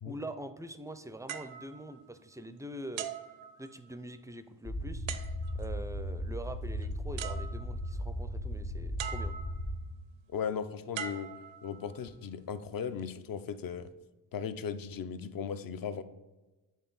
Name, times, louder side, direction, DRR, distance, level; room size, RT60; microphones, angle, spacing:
voice 1, 0.1-3.1 3.6-5.1 5.5-9.3, right 1 dB, 5° right, 11 dB, 0.4 m, -44 dB
sound 1, 1.3-2.5 3.0-4.1 5.1-5.8 6.8-6.9 7.2-8.0 9.0-9.8 10.9-12.1 12.8-13.0, right 9 dB, 75° right, 0.6 m, -42 dB
sound 2, 4.6-9.8, equal, 65° left, 1.8 m, -36 dB
voice 2, 10.3-11.3 11.6-13.9 14.3-16.0, left 7 dB, 45° left, 11 dB, 0.6 m, -37 dB
8.2 x 3.5 x 3.9 m, 1.2 s
supercardioid pair, 60°, 47 cm